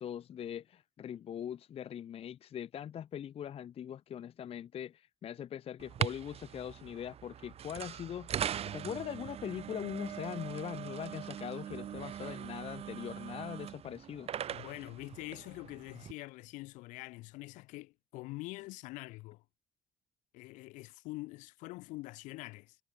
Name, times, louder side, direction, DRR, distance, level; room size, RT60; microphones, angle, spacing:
voice 1, 0.0-14.3, left 9 dB, 50° left, 0.4 m, -41 dB
sound 1, 5.8-16.1, right 10 dB, 55° right, 0.5 m, -41 dB
voice 2, 14.5-19.4 20.3-22.8, left 21 dB, 85° left, 1.8 m, -45 dB
supercardioid pair, 55°, 12 cm